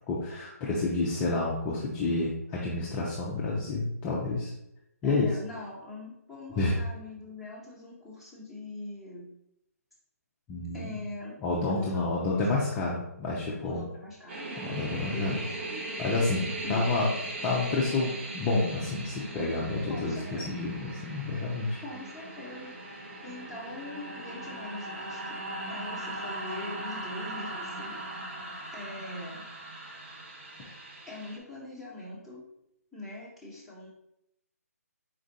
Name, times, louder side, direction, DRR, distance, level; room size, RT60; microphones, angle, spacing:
voice 1, 0.1-4.5 5.0-5.3 6.6-6.8 10.5-10.9 11.4-13.8 14.6-15.3 16.0-17.0 17.4-21.8, left 3 dB, 15° left, -5 dB, 0.5 m, -29 dB
voice 2, 5.0-9.3 10.7-11.4 11.7-12.5 13.6-14.5 15.1-15.9 16.6-16.9 19.9-20.5 21.8-25.4 25.7-28.0 28.7-29.4 31.1-32.4 32.9-33.9, left 2 dB, 5° right, -8 dB, 1.1 m, -42 dB
sound 1, 14.3-31.4, right 2 dB, 45° right, 0.9 m, -39 dB
4.5 x 2.4 x 4.0 m, 0.82 s
figure-of-eight pair, 150°, 9 cm